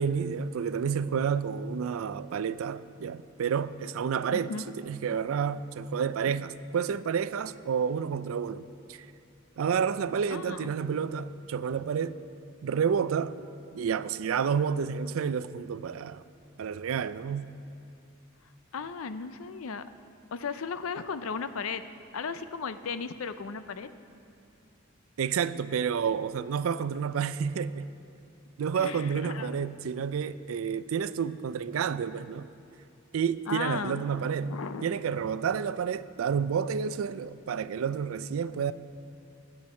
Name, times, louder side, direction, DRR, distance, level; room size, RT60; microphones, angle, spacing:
voice 1, 0.0-4.5 4.8-9.1 9.6-12.2 12.6-13.4 13.7-16.2 16.6-17.5 25.2-27.9 28.6-32.5 33.1-34.6 34.8-38.7, right 7 dB, 70° right, 0.4 m, -30 dB
voice 2, 4.3-4.7 10.3-10.7 18.7-19.8 20.3-21.8 22.1-23.9 28.8-29.6 33.5-34.0 34.5-34.9, left 5 dB, 75° left, 0.5 m, -35 dB
19.5 x 7.9 x 4.3 m
head